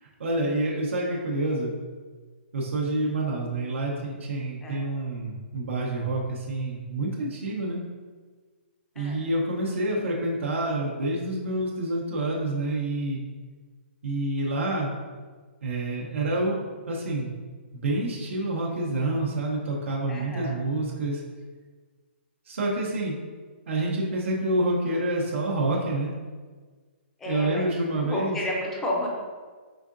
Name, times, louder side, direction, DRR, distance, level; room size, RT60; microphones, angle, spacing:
voice 1, 0.0-1.7 2.5-7.8 8.9-13.2 14.0-14.9 15.6-16.6 16.9-17.3 17.7-21.2 22.5-23.1 23.7-26.1 27.2-28.4, right 2 dB, 80° right, -4 dB, 0.9 m, -28 dB
voice 2, 20.1-20.6 27.2-27.7 28.0-29.1, left 1 dB, 5° left, -2 dB, 0.4 m, -31 dB
4.9 x 3.6 x 2.5 m, 1.5 s
hypercardioid pair, 175°, 7 cm